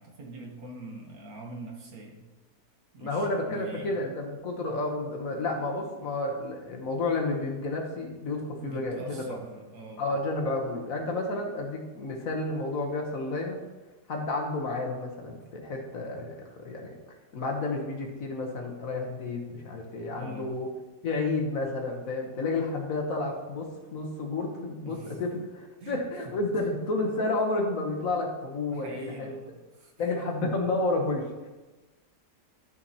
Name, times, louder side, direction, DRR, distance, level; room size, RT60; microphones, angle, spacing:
voice 1, 0.0-2.3 2.9-4.0 8.6-10.1 20.1-20.6 24.8-25.5 25.8-26.7 28.7-30.4, right 2 dB, 60° right, 1 dB, 1.5 m, -44 dB
voice 2, 3.0-9.2 10.0-13.6 14.1-16.9 17.3-20.7 21.0-25.3 25.9-29.4 30.0-31.5, left 2 dB, 55° left, 1 dB, 1.3 m, -31 dB
12.5 x 5.4 x 2.8 m, 1.1 s
omnidirectional pair, 1.9 m